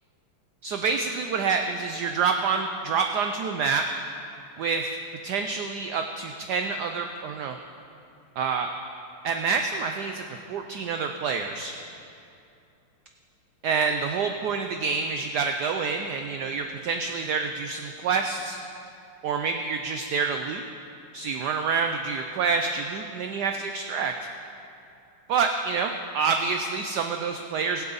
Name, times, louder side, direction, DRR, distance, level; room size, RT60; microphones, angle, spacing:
voice 1, 0.6-3.8 4.6-5.0 5.2-7.6 8.4-8.7 9.2-10.2 10.5-11.7 13.6-18.6 19.2-20.6 21.1-24.1 25.3-27.8, right 5 dB, 75° right, 5 dB, 0.9 m, -27 dB
20.0 x 7.9 x 4.0 m, 2.6 s
omnidirectional pair, 2.3 m